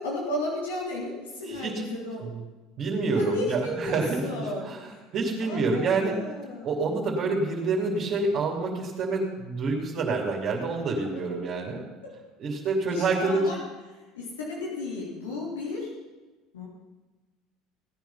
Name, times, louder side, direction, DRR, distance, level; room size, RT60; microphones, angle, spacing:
voice 1, 0.0-2.3 3.1-4.7 5.4-6.8 11.0-11.2 12.0-12.1 12.9-13.6 14.1-15.9 16.5-16.6, left 2 dB, 90° left, -4 dB, 3.3 m, -34 dB
voice 2, 1.5-1.8 2.3-2.4 2.8-6.2 6.6-11.8 12.4-13.5, right 3 dB, 50° right, -5 dB, 3.0 m, -27 dB
17.0 x 9.4 x 5.7 m, 1.2 s
hypercardioid pair, 75°, 0 cm